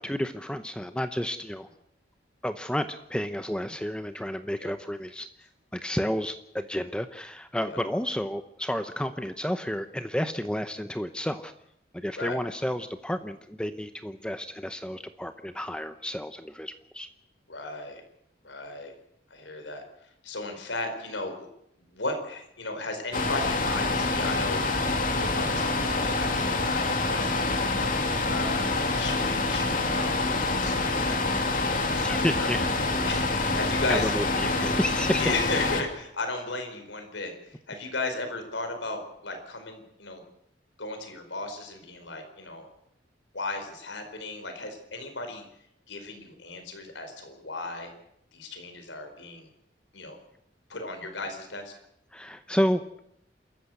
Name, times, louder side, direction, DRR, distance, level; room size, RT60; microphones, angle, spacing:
voice 1, 0.0-1.7 2.4-5.3 5.7-11.5 11.9-17.1 32.0-32.6 33.9-35.3 52.1-52.8, equal, 5° left, 9 dB, 0.8 m, -31 dB
voice 2, 17.5-18.0 18.4-18.9 19.3-21.5 21.8-28.0 28.3-32.7 33.0-34.4 35.2-40.2 40.8-42.7 43.3-45.5 45.9-47.9 48.3-49.5 49.9-50.2 50.7-51.7, left 2 dB, 90° left, 6 dB, 4.8 m, -36 dB
sound 1, 23.1-35.8, left 3 dB, 50° left, 2.7 m, -26 dB
28.5 x 14.0 x 7.9 m, 0.75 s
head